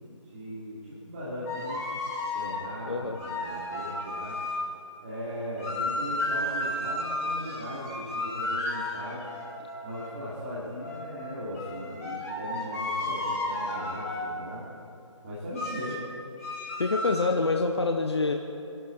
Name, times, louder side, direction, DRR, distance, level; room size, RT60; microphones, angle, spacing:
voice 1, 0.1-1.8 2.3-4.4 5.0-9.2 9.8-14.6 15.2-16.0, equal, 25° right, -10 dB, 3.2 m, -38 dB
sound 1, 1.5-2.6 3.2-4.7 5.6-10.2 10.8-14.3 15.5-16.0 16.4-17.3, left 2 dB, 30° left, 3.2 m, -33 dB
voice 2, 2.9-3.2 16.8-18.3, left 3 dB, 55° left, 4 dB, 1.0 m, -26 dB
26.5 x 11.5 x 4.3 m, 2.8 s
figure-of-eight pair, 155°, 17 cm